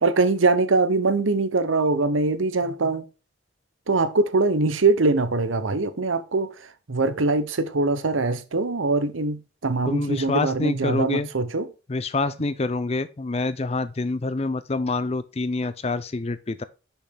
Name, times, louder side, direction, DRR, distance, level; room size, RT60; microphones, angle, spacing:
voice 1, 0.0-3.0 3.9-6.5 6.9-11.7, right 3 dB, 85° right, 0.8 m, -22 dB
voice 2, 9.9-11.3 11.9-16.6, left 3 dB, 30° left, 0.5 m, -26 dB
6.4 x 5.7 x 3.6 m
head